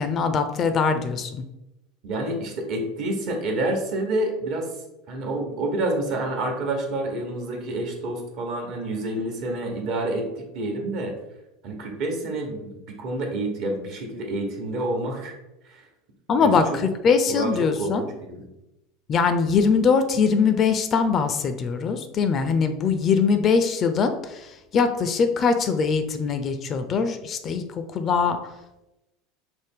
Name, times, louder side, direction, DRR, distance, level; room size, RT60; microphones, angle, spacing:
voice 1, 0.0-1.4 16.3-16.6 17.0-18.0 19.1-24.5 24.7-27.6 27.9-28.4, left 5 dB, 40° left, 9 dB, 0.4 m, -22 dB
voice 2, 2.0-4.7 5.1-10.3 10.5-11.1 11.6-15.3 15.6-15.8 16.4-16.8 17.3-18.5, right 2 dB, 60° right, 2 dB, 1.0 m, -28 dB
4.8 x 2.1 x 3.6 m, 0.93 s
hypercardioid pair, 85°, 0 cm